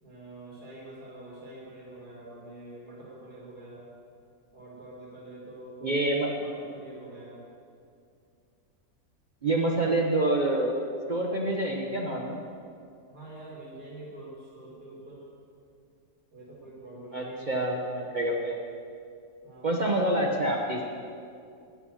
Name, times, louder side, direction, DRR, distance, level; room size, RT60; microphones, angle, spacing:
voice 1, 0.0-3.9 4.5-5.9 6.4-7.5 13.1-15.3 16.3-17.5 19.4-20.3, right 1 dB, 85° right, -5 dB, 2.8 m, -46 dB
voice 2, 5.8-6.3 9.4-10.7 11.1-12.4 17.1-18.6 19.6-20.8, right 1 dB, 40° right, -1 dB, 0.8 m, -27 dB
9.9 x 8.9 x 6.3 m, 2.4 s
omnidirectional pair, 1.6 m